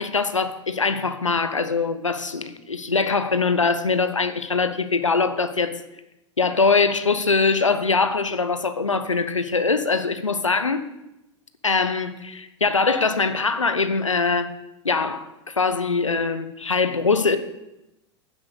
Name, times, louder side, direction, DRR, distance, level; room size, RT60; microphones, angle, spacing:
voice 1, 0.0-5.7 6.4-10.8 11.6-14.5 14.8-17.4, left 4 dB, 90° left, 11 dB, 0.8 m, -22 dB
10.0 x 7.4 x 6.6 m, 0.92 s
figure-of-eight pair, 90°, 16 cm